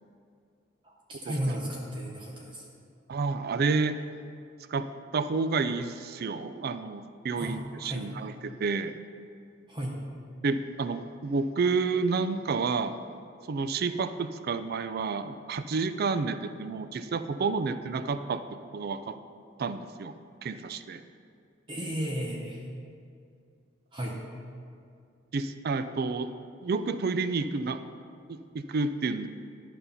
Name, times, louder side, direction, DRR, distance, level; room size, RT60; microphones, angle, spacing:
voice 1, 0.8-2.7 7.4-8.1 9.7-9.9 21.7-22.6 23.9-24.2, equal, 25° right, -2 dB, 0.8 m, -34 dB
voice 2, 3.1-4.0 4.7-4.9 5.1-8.9 10.4-13.0 13.5-18.4 18.7-19.2 19.6-20.1 20.4-21.0 25.3-26.3 26.6-27.8 28.3-29.3, right 4 dB, 50° right, 11 dB, 0.4 m, -30 dB
11.5 x 5.4 x 5.6 m, 2.4 s
head